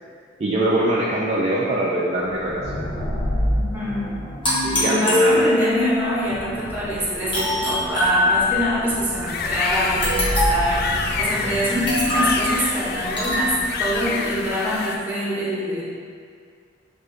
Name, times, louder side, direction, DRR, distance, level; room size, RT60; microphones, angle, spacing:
voice 1, 0.4-2.8 4.8-5.5, right 1 dB, 35° right, -5 dB, 0.4 m, -23 dB
sound 1, 2.2-14.8, equal, 75° left, 0.7 m, -30 dB
voice 2, 3.5-4.1 4.6-13.5 13.8-15.8, equal, 10° right, -8 dB, 1.1 m, -25 dB
sound 2, 4.4-5.9 7.3-8.8 10.0-10.8 11.9-12.4 13.2-13.5, left 1 dB, 25° left, 1.2 m, -21 dB
sound 3, 9.3-15.0, left 5 dB, 55° left, 0.3 m, -28 dB
6.6 x 2.5 x 3.2 m, 2.1 s
head